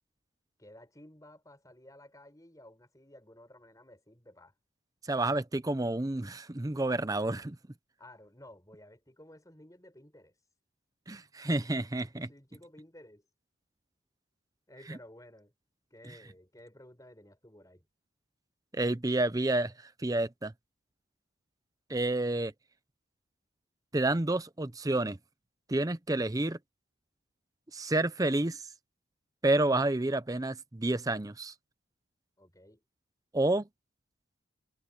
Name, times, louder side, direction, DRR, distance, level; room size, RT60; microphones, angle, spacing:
voice 1, 0.6-4.5 8.0-10.3 12.1-13.2 14.7-15.5 15.9-17.9 32.4-32.8, left 1 dB, 15° left, 6.0 m, -54 dB
voice 2, 5.1-7.6 11.1-12.3 14.9-15.0 18.7-20.5 21.9-22.5 23.9-25.2 25.7-26.6 27.7-28.7 29.4-31.5 33.3-33.7, right 2 dB, 15° right, 0.6 m, -29 dB
head